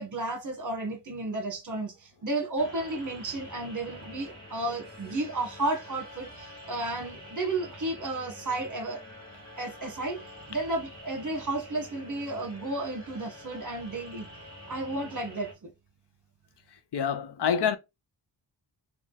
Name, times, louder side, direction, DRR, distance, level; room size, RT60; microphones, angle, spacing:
voice 1, 0.0-9.0 9.6-10.2 10.5-14.3 14.7-15.7, right 2 dB, 40° right, 1.3 m, -33 dB
sound 1, 2.6-15.5, left 1 dB, 10° left, 2.3 m, -47 dB
voice 2, 16.9-17.8, left 7 dB, 65° left, 0.6 m, -26 dB
3.6 x 3.0 x 3.9 m
wide cardioid pair, 160°, 44 cm